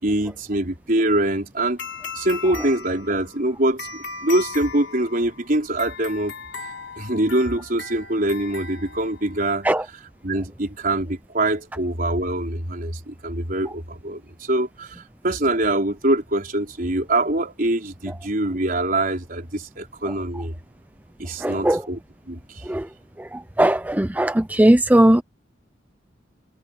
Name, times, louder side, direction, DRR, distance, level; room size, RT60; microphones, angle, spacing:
voice 1, 0.0-1.8 2.1-6.3 7.0-9.7 10.2-15.0 15.2-20.5 21.2-22.0 22.3-22.6, right 1 dB, 50° right, 4.5 m, -24 dB
sound 1, 1.8-9.5, left 4 dB, 75° left, 4.0 m, -37 dB
voice 2, 21.4-21.8 22.7-22.9 23.2-25.2, right 1 dB, 10° right, 0.6 m, -18 dB
head